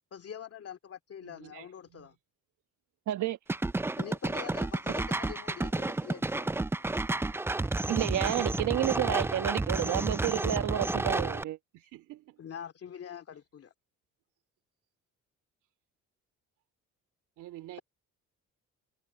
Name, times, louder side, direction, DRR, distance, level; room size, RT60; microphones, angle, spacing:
voice 1, 0.1-2.1 4.0-6.6 12.4-13.7, left 8 dB, 50° left, 2.5 m, -44 dB
voice 2, 1.2-2.1 11.7-12.4 17.4-17.8, right 15 dB, 90° right, 2.7 m, -49 dB
voice 3, 3.1-3.4 7.9-11.6, right 13 dB, 75° right, 1.3 m, -30 dB
sound 1, 3.5-11.4, right 2 dB, 10° right, 0.4 m, -31 dB
cardioid pair, 90°, 30 cm